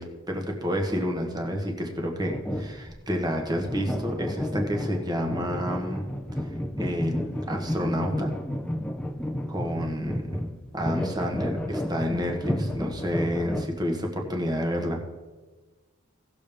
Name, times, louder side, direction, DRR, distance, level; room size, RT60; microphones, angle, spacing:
voice 1, 0.0-6.0 6.8-8.3 9.5-10.3 10.7-15.0, equal, 20° right, 3 dB, 1.3 m, -29 dB
sound 1, 2.3-3.0 3.6-13.7, left 1 dB, 5° left, 0.6 m, -31 dB
17.5 x 6.9 x 3.5 m, 1.3 s
head